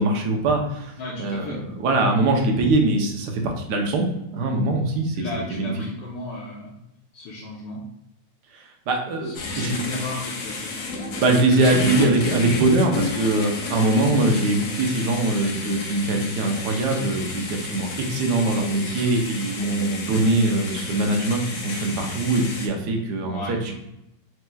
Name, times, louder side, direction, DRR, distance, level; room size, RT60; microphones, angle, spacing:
voice 1, 0.0-4.0 4.3-5.3 5.6-5.7 8.5-9.7 11.2-23.7, right 2 dB, 65° right, 2 dB, 1.1 m, -22 dB
voice 2, 1.0-1.6 5.1-6.8 7.1-7.8 9.2-10.9 23.2-23.6, left 2 dB, 90° left, -4 dB, 1.6 m, -34 dB
sound 1, 9.3-22.7, left 3 dB, 60° left, 0.9 m, -32 dB
4.7 x 4.1 x 2.2 m, 0.85 s
omnidirectional pair, 2.2 m